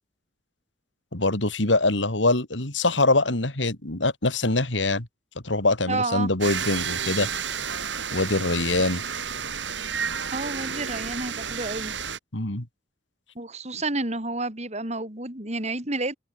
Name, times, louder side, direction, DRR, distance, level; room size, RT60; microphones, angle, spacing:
voice 1, 1.1-5.1 5.4-7.3 8.1-9.0 12.3-12.7, left 2 dB, 85° left, 3.5 m, -23 dB
voice 2, 5.9-6.3 10.3-11.9 13.4-16.2, right 2 dB, 35° right, 5.5 m, -30 dB
sound 1, 6.4-12.2, right 7 dB, 80° right, 3.3 m, -31 dB
head